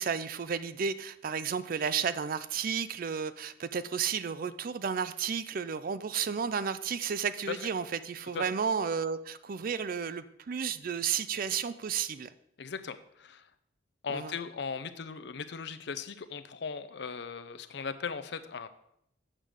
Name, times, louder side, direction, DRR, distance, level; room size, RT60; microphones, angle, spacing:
voice 1, 0.0-12.3 14.1-14.3, right 6 dB, 50° right, 14 dB, 0.4 m, -32 dB
voice 2, 12.6-13.4 14.0-18.7, left 5 dB, 60° left, 11 dB, 0.6 m, -38 dB
7.5 x 5.1 x 6.3 m, 0.75 s
head